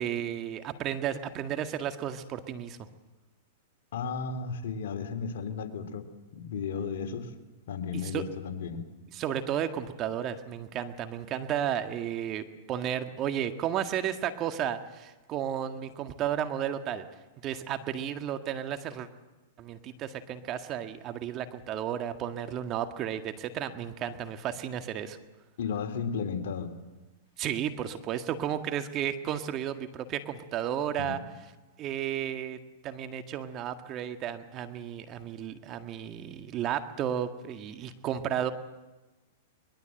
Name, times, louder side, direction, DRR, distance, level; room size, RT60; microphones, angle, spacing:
voice 1, 0.0-2.8 8.1-8.2 9.1-17.1 17.4-19.1 19.6-25.2 27.4-31.2 31.8-32.6 32.8-38.5, right 10 dB, 35° right, 8 dB, 1.8 m, -33 dB
voice 2, 3.9-6.1 6.3-7.3 7.7-8.8 25.6-26.7 31.0-31.2, left 6 dB, 70° left, 6 dB, 2.8 m, -34 dB
23.0 x 21.5 x 7.9 m, 1.1 s
hypercardioid pair, 120°, 0 cm